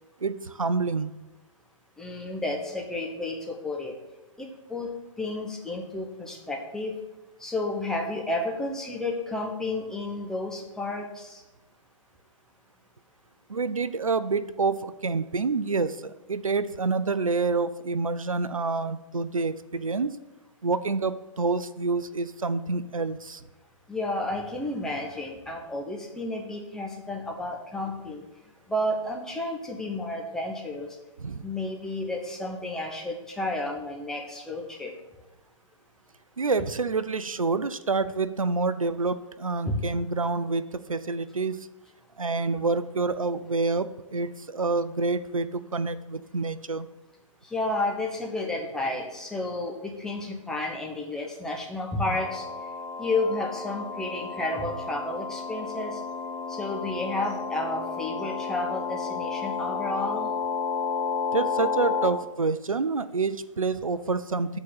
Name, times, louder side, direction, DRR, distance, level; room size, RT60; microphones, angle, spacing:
voice 1, 0.2-1.1 13.5-20.1 20.6-23.4 31.2-31.4 36.4-41.7 42.2-46.9 61.3-64.6, right 4 dB, 85° right, 14 dB, 0.4 m, -27 dB
voice 2, 2.0-3.9 4.4-4.9 5.2-7.0 7.4-11.4 23.9-28.2 28.7-30.9 31.4-34.9 39.7-39.9 47.4-52.4 53.0-56.0 56.5-60.3, left 2 dB, 5° left, -1 dB, 0.8 m, -31 dB
sound 1, 52.0-62.1, left 5 dB, 25° left, 1.1 m, -32 dB
8.3 x 3.9 x 6.7 m, 1.0 s
figure-of-eight pair, 120°, 17 cm